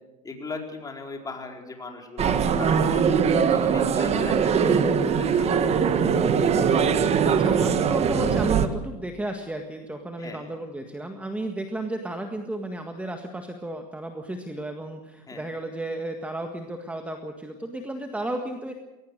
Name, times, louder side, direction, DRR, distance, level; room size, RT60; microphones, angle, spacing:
voice 1, 0.2-6.0 10.2-10.5 15.3-15.4, left 3 dB, 15° left, 2 dB, 4.6 m, -39 dB
sound 1, 2.2-8.7, right 6 dB, 30° right, 1.5 m, -21 dB
voice 2, 7.3-18.7, right 1 dB, 5° right, 5 dB, 1.7 m, -33 dB
21.5 x 19.0 x 6.7 m, 1.1 s
supercardioid pair, 120°, 21 cm